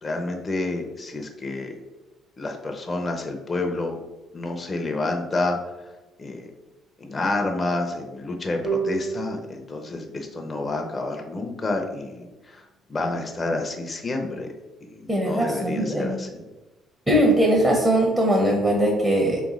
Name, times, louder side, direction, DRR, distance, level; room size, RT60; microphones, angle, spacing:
voice 1, 0.0-1.8 2.4-4.0 4.3-5.6 6.2-6.5 7.0-12.6 12.9-14.5 14.8-16.5, left 2 dB, 25° left, 3 dB, 0.6 m, -29 dB
sound 1, 8.6-11.9, right 6 dB, 45° right, 1.2 m, -33 dB
voice 2, 15.1-16.2 17.1-19.4, right 1 dB, 15° right, -1 dB, 0.8 m, -20 dB
3.4 x 3.1 x 3.7 m, 1.1 s
cardioid pair, 85°, 0 cm